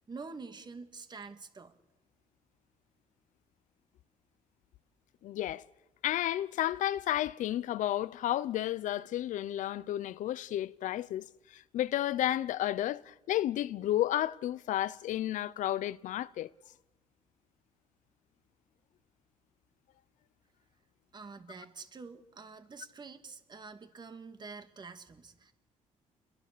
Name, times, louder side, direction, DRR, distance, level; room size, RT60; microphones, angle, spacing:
voice 1, 0.0-1.8 21.1-25.5, right 4 dB, 35° right, 2.3 m, -47 dB
voice 2, 5.2-5.6 6.0-16.5, left 13 dB, 75° left, 0.8 m, -32 dB
28.5 x 22.0 x 6.9 m
cardioid pair, 90°, 13 cm